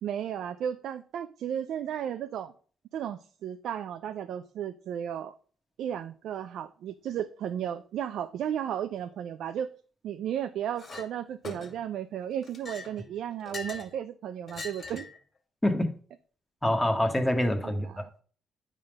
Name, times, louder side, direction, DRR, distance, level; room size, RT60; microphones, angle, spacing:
voice 1, 0.0-2.5 2.9-5.4 5.8-9.7 10.0-15.1 17.6-18.0, right 9 dB, 75° right, 0.5 m, -34 dB
Chink clink, 10.8-11.1 11.4-11.9 12.4-13.9 14.5-15.2, left 3 dB, 40° left, 2.2 m, -42 dB
voice 2, 15.6-15.9 16.6-18.2, left 1 dB, 10° left, 1.4 m, -26 dB
9.5 x 3.7 x 6.5 m
cardioid pair, 90°, 0 cm